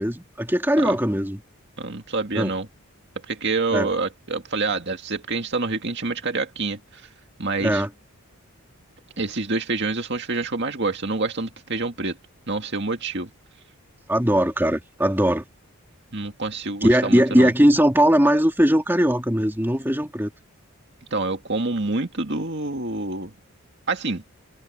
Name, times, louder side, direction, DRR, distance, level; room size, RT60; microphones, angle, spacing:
voice 1, 0.0-1.4 2.3-2.5 3.7-3.9 7.6-7.9 14.1-15.4 16.8-20.3, equal, 10° right, 2.7 m, -19 dB
voice 2, 1.8-2.7 3.3-7.1 7.4-7.8 9.2-12.2 12.5-13.3 16.1-17.5 21.1-23.3 23.9-24.2, right 3 dB, 50° right, 2.1 m, -27 dB
head